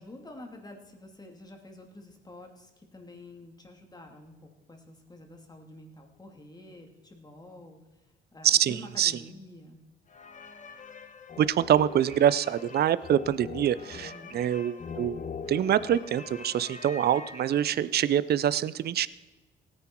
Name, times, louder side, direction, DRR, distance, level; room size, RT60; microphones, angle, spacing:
voice 1, 0.0-7.8 8.3-9.8 13.9-14.4, left 1 dB, 20° left, 3 dB, 2.5 m, -48 dB
voice 2, 8.4-9.1 11.4-15.2 15.5-19.1, right 10 dB, 55° right, 17 dB, 0.5 m, -25 dB
sound 1, 10.1-18.0, left 5 dB, 40° left, 1.1 m, -43 dB
17.0 x 9.9 x 4.5 m, 1.1 s
cardioid pair, 90°, 20 cm